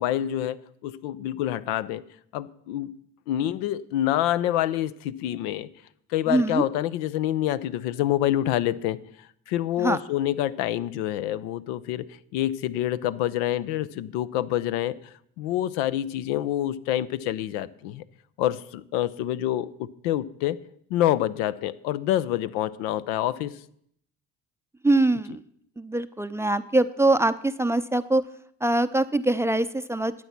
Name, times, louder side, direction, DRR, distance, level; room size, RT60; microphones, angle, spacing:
voice 1, 0.0-2.0 2.3-3.0 3.3-5.7 6.1-9.0 9.5-18.0 18.4-20.6 20.9-23.6, left 12 dB, 80° left, 0.6 m, -27 dB
voice 2, 6.3-6.6 9.8-10.0 24.8-25.4 25.8-28.2 28.6-30.1, right 2 dB, 10° right, 0.5 m, -23 dB
12.0 x 8.4 x 5.9 m
hypercardioid pair, 70°, 30 cm